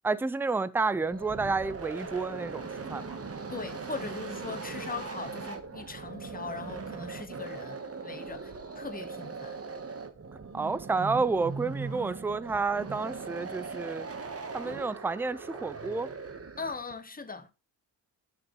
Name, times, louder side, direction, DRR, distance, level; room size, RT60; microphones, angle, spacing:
voice 1, 0.0-3.2 10.5-14.1 14.5-16.1, right 4 dB, 5° right, 0.4 m, -30 dB
sound 1, 0.8-16.9, right 4 dB, 30° right, 1.3 m, -40 dB
voice 2, 3.5-7.8 8.0-9.6 16.6-17.5, left 4 dB, 20° left, 1.2 m, -40 dB
10.5 x 6.1 x 3.1 m
cardioid pair, 70°, 46 cm